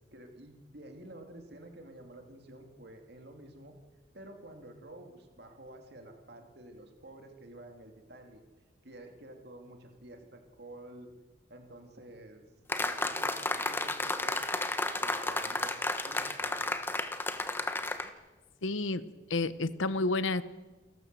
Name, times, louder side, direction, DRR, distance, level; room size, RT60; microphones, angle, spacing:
voice 1, 0.1-3.8 4.1-8.4 8.8-11.1 11.5-12.4 12.8-14.5 15.0-16.7, right 1 dB, 55° right, 4 dB, 2.6 m, -50 dB
sound 1, 12.7-18.1, left 2 dB, 10° left, 1.1 m, -32 dB
voice 2, 18.6-19.0 19.3-20.4, left 3 dB, 90° left, 15 dB, 1.0 m, -30 dB
28.5 x 13.5 x 7.5 m, 1.2 s
head